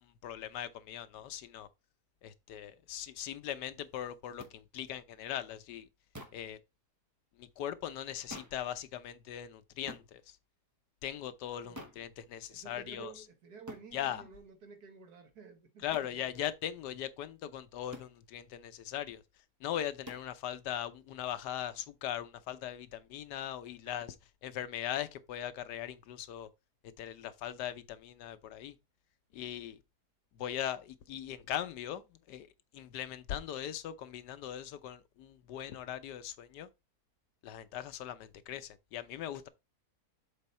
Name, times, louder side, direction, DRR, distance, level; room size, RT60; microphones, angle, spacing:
voice 1, 0.0-1.7 2.2-5.9 6.3-6.6 7.4-10.4 11.0-13.2 13.9-14.3 15.8-19.2 19.6-24.1 24.4-26.5 27.0-28.8 29.3-29.8 30.3-32.0 32.3-32.5 32.7-36.7 37.4-39.5, left 11 dB, 90° left, 1.3 m, -40 dB
sound 1, 4.4-4.6 6.1-6.5 8.3-8.7 9.9-10.1 11.8-12.1 13.7-13.9 15.9-16.2 17.9-18.2 20.1-20.3, equal, 15° right, 0.6 m, -47 dB
voice 2, 11.6-12.0 12.5-16.3, right 6 dB, 70° right, 1.7 m, -52 dB
7.3 x 3.8 x 4.3 m
omnidirectional pair, 1.7 m